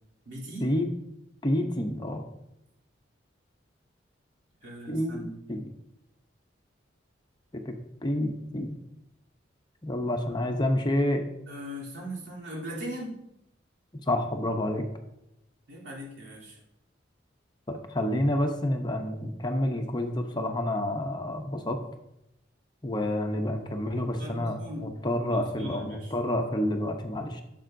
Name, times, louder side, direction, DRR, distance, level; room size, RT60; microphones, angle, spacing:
voice 1, 0.2-0.7 4.6-5.3 11.5-13.2 15.7-16.6 24.2-24.9 25.3-26.1, equal, 80° right, -5 dB, 3.2 m, -39 dB
voice 2, 1.4-2.2 4.9-5.2 5.5-5.7 7.5-7.7 8.0-8.8 9.8-11.2 14.1-14.9 17.7-21.8 22.8-27.4, left 1 dB, 20° left, 4 dB, 0.7 m, -28 dB
12.0 x 7.5 x 2.6 m, 0.85 s
head